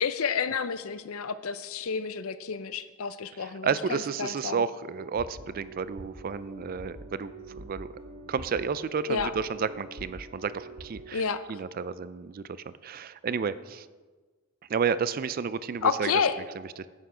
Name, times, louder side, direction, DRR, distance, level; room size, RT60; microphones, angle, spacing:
voice 1, 0.0-4.6 9.1-9.3 11.1-11.4 15.8-16.4, left 6 dB, 85° left, 13 dB, 0.6 m, -30 dB
voice 2, 3.4-7.9 8.3-13.9 14.7-16.1 16.6-16.9, right 6 dB, 45° right, 16 dB, 0.4 m, -31 dB
sound 1, 5.0-11.1, right 1 dB, 75° right, 1.6 m, -45 dB
10.5 x 8.1 x 4.9 m, 1.4 s
head